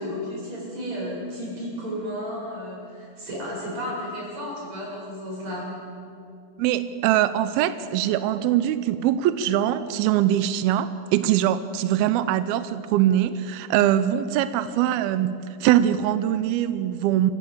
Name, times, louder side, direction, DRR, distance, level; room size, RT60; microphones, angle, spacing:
voice 1, 0.0-5.7, equal, 35° right, -4 dB, 9.1 m, -33 dB
voice 2, 6.6-17.3, right 11 dB, 85° right, 12 dB, 2.2 m, -22 dB
27.0 x 16.0 x 8.6 m, 2.4 s
omnidirectional pair, 5.1 m